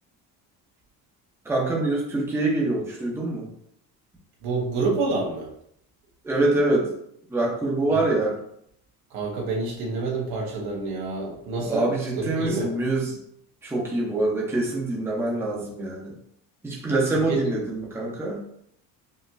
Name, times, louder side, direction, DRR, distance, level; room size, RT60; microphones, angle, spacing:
voice 1, 1.5-3.5 6.2-6.9 7.3-8.3 11.7-13.2 13.6-16.1 16.6-18.4, right 2 dB, 5° right, -4 dB, 0.8 m, -25 dB
voice 2, 4.4-5.5 7.9-8.0 9.1-11.9 12.2-12.7 17.1-17.5, right 3 dB, 80° right, -2 dB, 1.5 m, -28 dB
5.4 x 2.9 x 2.6 m, 0.70 s
cardioid pair, 160°, 37 cm